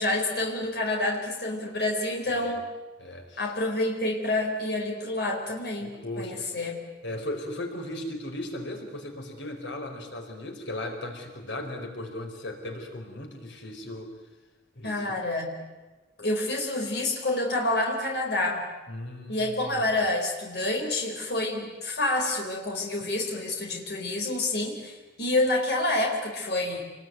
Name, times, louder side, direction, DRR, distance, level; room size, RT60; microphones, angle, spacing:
voice 1, 0.0-2.7 3.4-6.8 14.8-15.6 16.2-18.6 19.3-26.8, left 2 dB, 60° left, 1 dB, 4.4 m, -28 dB
voice 2, 2.2-2.6 3.0-3.5 5.8-6.5 7.0-14.1 14.8-15.2 18.9-19.9, left 1 dB, 90° left, 3 dB, 4.7 m, -37 dB
28.5 x 21.5 x 9.4 m, 1.2 s
head